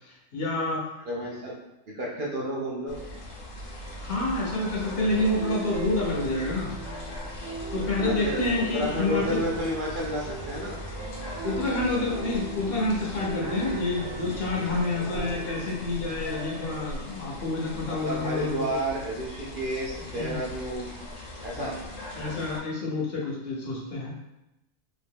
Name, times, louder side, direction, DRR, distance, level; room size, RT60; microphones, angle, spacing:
voice 1, 0.3-0.8 4.0-6.8 7.7-9.4 11.4-18.8 20.1-20.4 21.6-21.8 22.1-24.1, left 2 dB, 55° left, -3 dB, 0.8 m, -28 dB
voice 2, 1.1-1.6 1.9-3.0 8.0-10.8 14.9-15.1 18.0-20.9 21.4-21.7, equal, 55° right, -5 dB, 0.6 m, -31 dB
sound 1, 2.9-22.6, left 1 dB, 80° left, 1.1 m, -39 dB
sound 2, 5.0-17.0, right 5 dB, 80° right, 0.9 m, -38 dB
2.8 x 2.6 x 3.5 m, 0.93 s
omnidirectional pair, 1.3 m